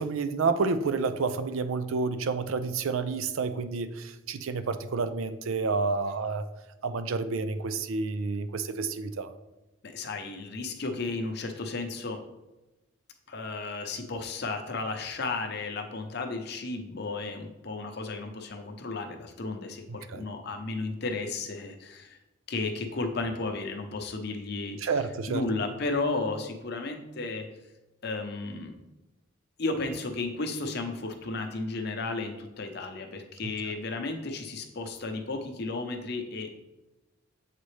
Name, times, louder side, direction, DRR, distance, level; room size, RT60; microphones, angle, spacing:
voice 1, 0.0-6.5 6.8-9.3 20.1-20.2 24.8-25.4, right 4 dB, 80° right, 11 dB, 0.5 m, -29 dB
voice 2, 9.8-12.2 13.3-22.2 22.5-25.0 25.3-27.5 28.0-28.7 29.6-36.6, left 3 dB, 50° left, 5 dB, 0.7 m, -33 dB
7.4 x 4.1 x 3.2 m, 1.0 s
head